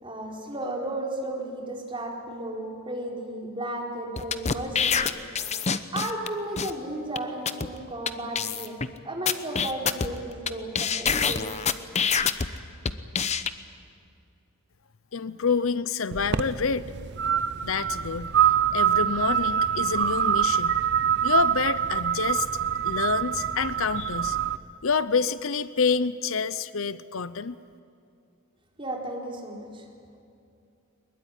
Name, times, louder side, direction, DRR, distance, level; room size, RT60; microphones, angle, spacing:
voice 1, 0.0-5.2 5.9-8.7 9.0-11.5 28.8-29.8, right 1 dB, 25° right, 0 dB, 4.3 m, -34 dB
sound 1, 4.2-6.3 6.6-6.7 7.2-7.3 7.5-7.7 8.1-8.2 8.3-8.9 9.3-10.5 10.7-12.5 12.8-13.5, left 6 dB, 30° left, 0.9 m, -25 dB
voice 2, 15.1-16.9 17.6-18.4 18.7-20.8 21.2-22.5 22.8-24.4 24.8-27.6, left 5 dB, 65° left, 15 dB, 0.7 m, -27 dB
sound 2, 16.1-24.6, right 8 dB, 55° right, 0.8 m, -25 dB
22.0 x 21.5 x 9.9 m, 2.5 s
head